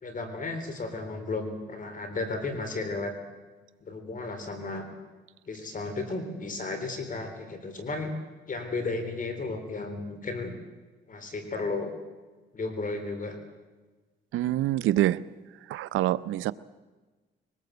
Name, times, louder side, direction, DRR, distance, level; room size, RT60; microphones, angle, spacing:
voice 1, 0.0-3.1 3.8-4.8 5.5-8.1 8.5-10.5 11.1-11.9 12.5-13.4, left 3 dB, 40° left, 7 dB, 3.8 m, -34 dB
voice 2, 14.3-15.2 15.7-16.5, right 14 dB, 85° right, 17 dB, 0.7 m, -25 dB
22.5 x 19.5 x 8.0 m, 1.3 s
cardioid pair, 90°, 20 cm